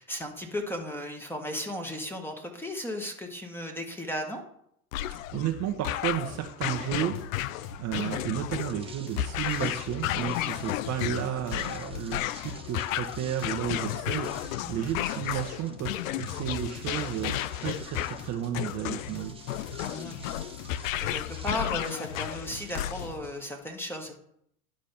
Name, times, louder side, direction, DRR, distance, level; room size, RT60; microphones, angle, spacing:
voice 1, 0.0-4.4 14.6-14.8 19.8-20.1 21.0-24.1, left 1 dB, 5° left, 3 dB, 1.5 m, -35 dB
sound 1, 4.9-23.3, left 13 dB, 65° left, 0.5 m, -33 dB
voice 2, 5.1-7.2 7.8-19.4, right 10 dB, 35° right, 4 dB, 1.0 m, -33 dB
Jingles and Beats music, 6.8-23.3, left 4 dB, 45° left, 1.5 m, -47 dB
sound 2, 8.6-23.3, right 5 dB, 10° right, 1.0 m, -52 dB
10.5 x 5.3 x 5.8 m, 0.73 s
hypercardioid pair, 90°, 44 cm